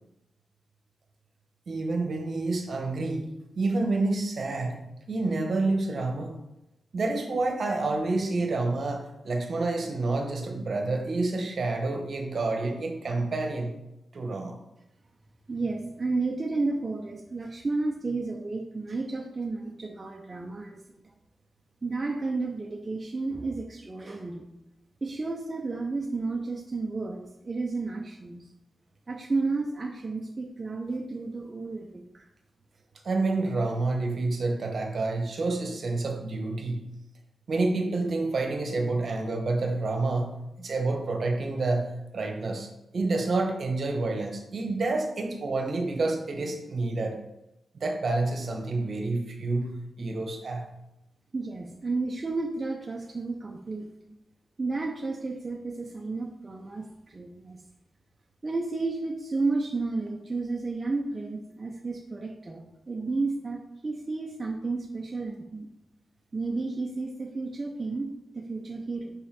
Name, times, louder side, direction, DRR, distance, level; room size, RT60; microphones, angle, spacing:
voice 1, 1.7-4.8 5.1-6.3 6.9-13.7 14.1-14.6 33.0-36.9 37.5-47.2 47.7-50.7, right 3 dB, 55° right, 3 dB, 1.1 m, -28 dB
voice 2, 15.5-21.0 21.8-24.4 25.0-28.4 29.1-32.3 51.3-53.9 54.6-57.6 58.4-65.7 66.3-68.1 68.3-69.1, right 3 dB, 30° right, 0 dB, 0.7 m, -32 dB
5.5 x 5.5 x 4.3 m, 0.92 s
wide cardioid pair, 130°, 0 cm